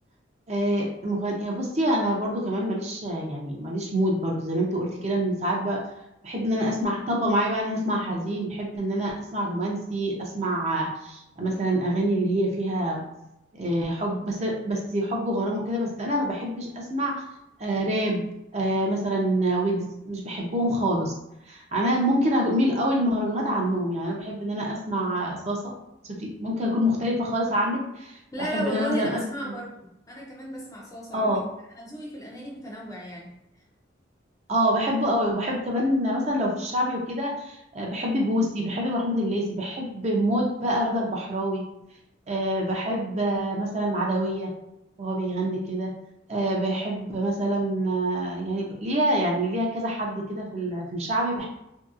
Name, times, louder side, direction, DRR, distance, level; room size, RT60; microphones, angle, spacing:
voice 1, 0.5-5.8 6.2-13.0 13.5-17.1 17.6-18.2 18.5-21.1 21.5-25.7 26.2-29.5 31.1-31.4 34.5-41.6 42.3-44.5 45.0-45.9 46.3-51.5, right 1 dB, 35° right, -2 dB, 0.5 m, -26 dB
voice 2, 28.3-31.4 31.7-33.4, equal, 15° left, -3 dB, 0.5 m, -34 dB
3.0 x 2.7 x 2.4 m, 0.85 s
head